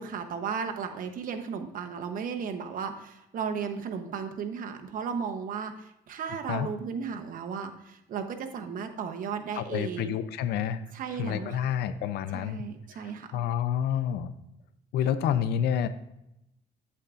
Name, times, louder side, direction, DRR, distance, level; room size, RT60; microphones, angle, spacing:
voice 1, 0.0-10.2 10.9-11.7 12.3-13.3, right 6 dB, 55° right, 5 dB, 0.9 m, -35 dB
voice 2, 9.5-10.8 11.1-12.6 12.9-14.3 14.9-15.9, left 9 dB, 75° left, 12 dB, 0.6 m, -29 dB
8.2 x 8.1 x 2.5 m, 0.84 s
cardioid pair, 110°, 17 cm